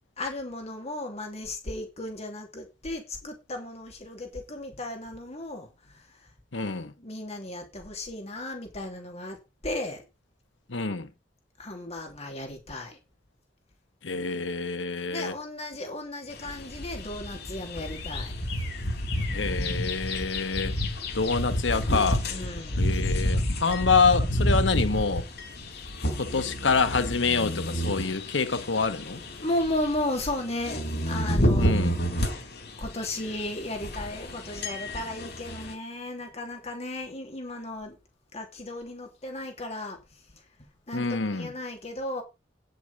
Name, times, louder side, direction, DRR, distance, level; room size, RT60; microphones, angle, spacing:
voice 1, 0.2-6.3 7.0-9.4 9.6-10.0 11.6-13.0 15.1-18.4 22.3-22.9 29.4-31.8 32.2-32.3 32.8-38.0 38.3-40.5 40.9-42.2, left 1 dB, 35° left, 3.0 m, -35 dB
voice 2, 6.5-6.9 10.7-11.1 14.0-15.3 19.3-20.7 21.1-22.2 22.8-25.3 26.1-29.2 31.6-31.9 40.9-41.5, left 4 dB, 90° left, 1.2 m, -26 dB
sound 1, 16.3-35.7, equal, 65° left, 4.1 m, -30 dB
9.9 x 8.1 x 5.3 m
head